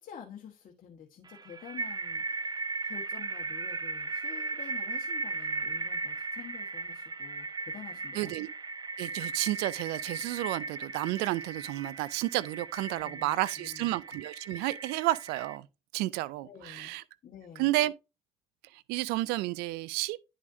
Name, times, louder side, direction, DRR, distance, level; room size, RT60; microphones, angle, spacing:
voice 1, 0.0-2.5 2.8-8.3 12.9-14.0 16.4-16.9 17.2-17.7, left 8 dB, 60° left, 1.3 m, -49 dB
sound 1, 1.3-15.6, right 3 dB, 25° right, 0.5 m, -37 dB
voice 2, 8.1-8.5 9.0-15.7 15.9-17.0 17.6-17.9 18.9-20.2, right 17 dB, 85° right, 0.4 m, -31 dB
10.0 x 4.9 x 2.6 m
hypercardioid pair, 45°, 16 cm